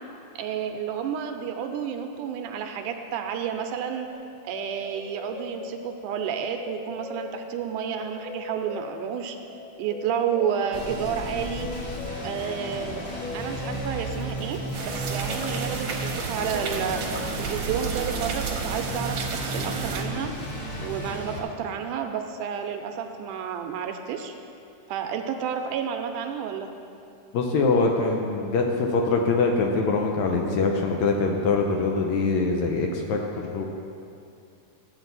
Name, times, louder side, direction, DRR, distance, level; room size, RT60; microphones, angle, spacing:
voice 1, 0.4-4.1 4.4-9.4 9.8-11.7 12.2-13.0 13.3-14.6 14.8-20.3 20.8-24.3 24.9-26.7, right 8 dB, 85° right, 5 dB, 2.1 m, -30 dB
sound 1, 4.1-17.3, left 4 dB, 90° left, 1.4 m, -41 dB
sound 2, 10.7-21.4, right 1 dB, 35° left, 1.4 m, -33 dB
sound 3, 14.7-20.0, right 4 dB, 65° right, 1.6 m, -33 dB
voice 2, 27.3-33.7, left 3 dB, 70° left, 1 dB, 1.9 m, -23 dB
13.5 x 8.1 x 4.0 m, 2.6 s
omnidirectional pair, 3.7 m